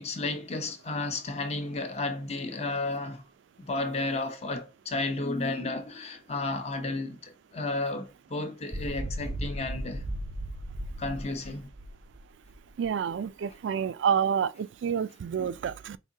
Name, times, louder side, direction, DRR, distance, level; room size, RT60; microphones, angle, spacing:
voice 1, 0.0-3.2 3.6-10.0 11.0-11.7 15.4-15.5, left 2 dB, 35° left, 0.6 m, -33 dB
sound 1, 8.7-12.9, right 1 dB, 15° right, 0.4 m, -36 dB
voice 2, 12.8-16.0, right 7 dB, 85° right, 0.3 m, -28 dB
4.8 x 2.6 x 2.7 m
head